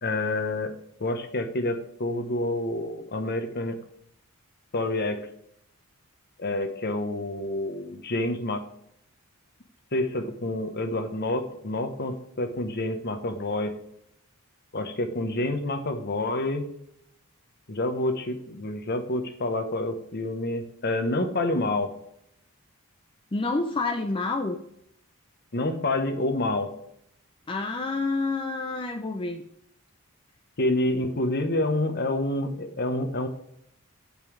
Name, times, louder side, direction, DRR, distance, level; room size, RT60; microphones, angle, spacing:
voice 1, 0.0-0.7 1.0-3.8 4.7-5.2 6.4-8.6 9.9-13.7 14.7-16.6 17.7-21.9 25.5-26.7 30.6-33.3, left 2 dB, 45° left, 7 dB, 1.1 m, -28 dB
voice 2, 23.3-24.6 27.5-29.4, left 3 dB, 25° left, 4 dB, 0.5 m, -28 dB
9.1 x 5.5 x 4.7 m, 0.73 s
head